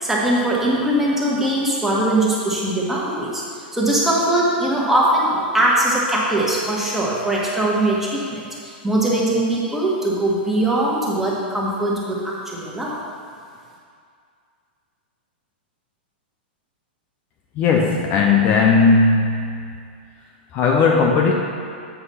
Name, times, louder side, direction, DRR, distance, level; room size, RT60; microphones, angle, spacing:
voice 1, 0.0-3.4 3.7-12.9, right 1 dB, 5° right, -5 dB, 1.5 m, -21 dB
voice 2, 17.6-19.5 20.5-21.3, left 4 dB, 35° left, 0 dB, 0.6 m, -16 dB
8.1 x 4.9 x 5.5 m, 2.2 s
hypercardioid pair, 140°, 6 cm